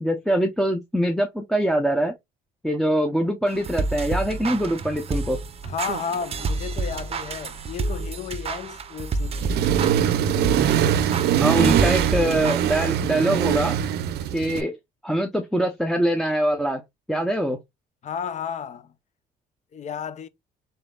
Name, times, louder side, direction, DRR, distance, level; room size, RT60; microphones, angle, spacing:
voice 1, 0.0-2.1 2.6-5.4 11.4-13.8 14.3-14.8 15.0-16.8 17.1-17.6, right 1 dB, ahead, 0.7 m, -23 dB
sound 1, 3.5-12.6, right 3 dB, 35° right, 0.7 m, -30 dB
voice 2, 5.6-9.7 18.0-18.9 19.7-20.3, left 7 dB, 45° left, 0.7 m, -33 dB
Accelerating revving vroom, 9.4-14.6, right 9 dB, 75° right, 0.6 m, -22 dB
4.0 x 3.9 x 2.3 m
cardioid pair, 110°, 17 cm